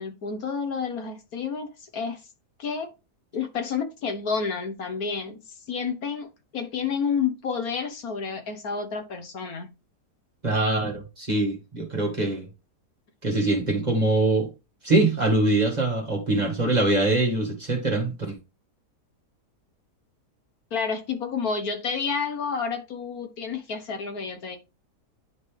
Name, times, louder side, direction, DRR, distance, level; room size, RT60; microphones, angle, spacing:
voice 1, 0.0-2.2 2.6-2.9 3.3-5.4 5.7-9.7 20.7-24.6, left 5 dB, 65° left, 1.6 m, -30 dB
voice 2, 10.4-12.5 13.2-14.5 14.8-18.4, right 2 dB, 25° right, 2.1 m, -23 dB
10.5 x 4.1 x 3.4 m
omnidirectional pair, 1.8 m